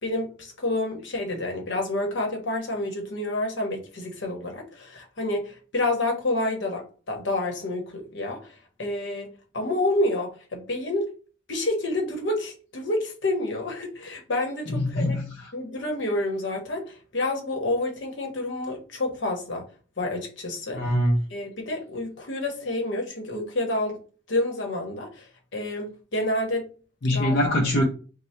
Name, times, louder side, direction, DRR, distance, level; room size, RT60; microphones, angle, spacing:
voice 1, 0.0-8.4 8.8-11.1 11.5-15.2 15.5-19.6 20.0-20.8 21.3-24.0 24.3-25.2 25.5-26.7 27.1-27.5, left 2 dB, 70° left, 1.0 m, -29 dB
voice 2, 14.7-15.5 20.7-21.2 27.0-27.8, left 1 dB, 55° left, 0.6 m, -23 dB
3.2 x 2.2 x 4.2 m
head